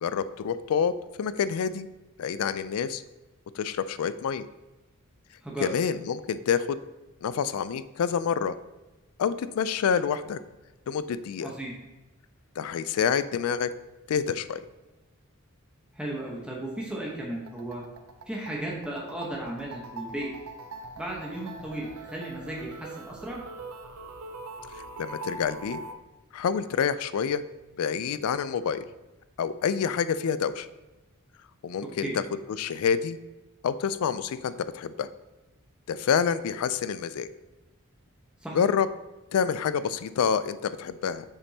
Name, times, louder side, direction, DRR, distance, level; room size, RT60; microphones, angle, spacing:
voice 1, 0.0-0.9 1.2-1.9 2.2-3.0 3.5-4.5 5.6-6.8 7.2-8.6 9.2-10.4 10.9-11.5 12.6-13.7 14.1-14.6 25.0-25.8 26.3-27.4 27.8-28.8 29.4-30.7 31.6-32.1 32.6-33.2 33.6-35.1 35.9-37.3 38.5-38.9 39.3-41.2, left 7 dB, 80° left, 14 dB, 0.3 m, -27 dB
voice 2, 11.4-11.7 16.0-17.8 18.3-20.3 21.0-23.4 32.0-32.1 38.4-38.6, right 1 dB, 5° right, -3 dB, 0.9 m, -35 dB
sound 1, 17.3-25.9, right 3 dB, 80° right, 0.5 m, -42 dB
7.0 x 5.2 x 2.8 m, 1.1 s
head